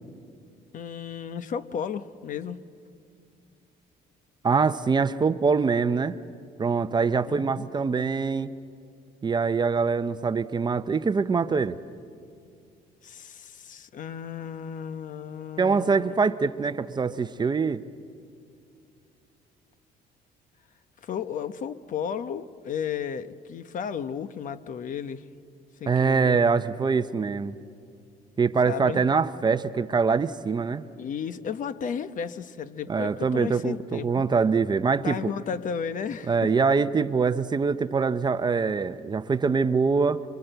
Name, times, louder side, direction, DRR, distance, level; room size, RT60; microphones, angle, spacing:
voice 1, 0.7-2.6 7.2-7.6 13.0-16.1 21.0-25.2 25.8-26.4 28.6-29.0 31.0-34.2 35.0-36.5, left 7 dB, 50° left, 12 dB, 1.0 m, -34 dB
voice 2, 4.4-6.1 6.6-8.5 9.2-11.8 15.6-17.8 25.9-27.6 28.4-30.8 32.9-35.2 36.3-40.2, right 5 dB, 25° right, 12 dB, 0.7 m, -24 dB
26.5 x 24.0 x 8.0 m, 2.4 s
cardioid pair, 110°, 17 cm